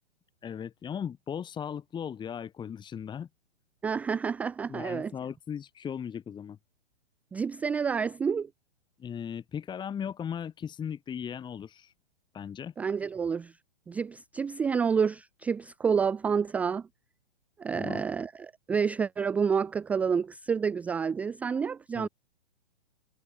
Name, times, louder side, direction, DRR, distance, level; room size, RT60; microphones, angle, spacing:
voice 1, 0.4-3.3 4.7-6.6 9.0-11.9 12.3-12.7 17.7-18.0 21.9-22.1, left 8 dB, 15° left, 2.7 m, -37 dB
voice 2, 3.8-5.1 7.3-8.5 12.8-13.5 13.9-16.8 17.6-22.1, right 6 dB, 5° right, 0.4 m, -29 dB
figure-of-eight pair, 115°, 32 cm